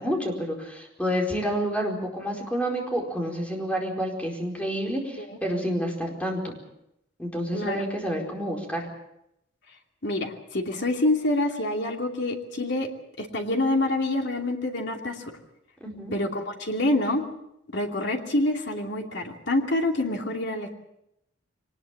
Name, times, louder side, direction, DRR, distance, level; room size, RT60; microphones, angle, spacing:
voice 1, 0.0-6.6 7.2-8.9 15.8-16.1, equal, 5° left, 1 dB, 4.6 m, -29 dB
voice 2, 10.0-12.9 13.2-15.3 16.1-17.2 17.7-20.7, left 2 dB, 60° left, 3 dB, 2.8 m, -26 dB
23.5 x 19.5 x 7.3 m, 0.81 s
head